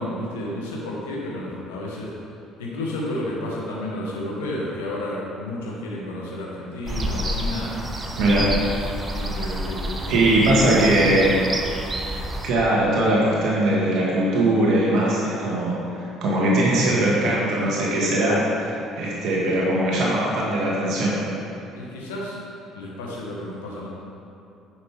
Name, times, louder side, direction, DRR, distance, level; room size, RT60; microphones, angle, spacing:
voice 1, 0.0-2.1 2.6-7.7 8.2-8.5 9.1-10.4 21.7-22.4 22.7-23.9, left 1 dB, 75° left, -4 dB, 1.5 m, -31 dB
sound 1, 6.9-12.5, right 1 dB, 25° right, 0.9 m, -29 dB
voice 2, 8.2-8.5 10.1-11.4 12.1-21.2, right 1 dB, 55° right, -5 dB, 1.7 m, -21 dB
9.7 x 6.3 x 3.6 m, 2.8 s
figure-of-eight pair, 55°, 0 cm